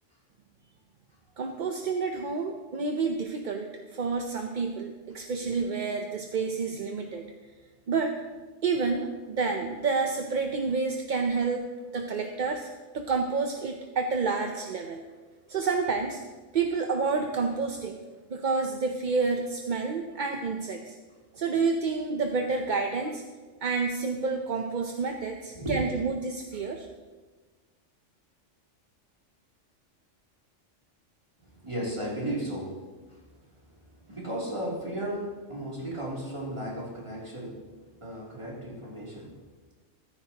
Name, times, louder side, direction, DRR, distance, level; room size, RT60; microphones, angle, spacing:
voice 1, 1.4-7.2 7.9-8.2 8.6-11.7 11.9-12.7 12.9-15.0 15.5-16.2 16.5-18.0 18.3-21.0 21.3-23.2 23.6-26.9, right 4 dB, 45° right, 4 dB, 0.7 m, -29 dB
voice 2, 25.5-25.9 31.4-33.3 33.6-39.4, right 1 dB, 25° right, -5 dB, 2.9 m, -35 dB
14.0 x 13.5 x 2.9 m, 1.3 s
omnidirectional pair, 1.3 m